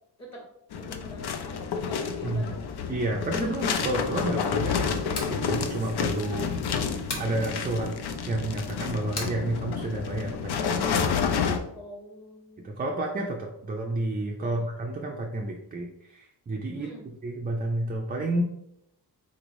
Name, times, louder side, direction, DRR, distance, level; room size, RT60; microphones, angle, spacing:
sound 1, 0.7-11.6, left 6 dB, 70° left, 0.5 m, -29 dB
voice 1, 0.7-1.3 1.9-2.7 11.7-13.0 14.4-14.6 16.7-17.1, left 1 dB, 40° left, -4 dB, 1.4 m, -44 dB
voice 2, 2.2-2.6 2.9-6.9 7.2-7.9 8.3-11.3 12.6-16.9 17.2-18.4, right 2 dB, 25° right, 0 dB, 0.4 m, -31 dB
sound 2, 5.1-5.4 7.1-7.3 9.1-9.4, left 3 dB, 85° left, 0.9 m, -34 dB
3.9 x 3.1 x 2.5 m, 0.78 s
wide cardioid pair, 115°, 41 cm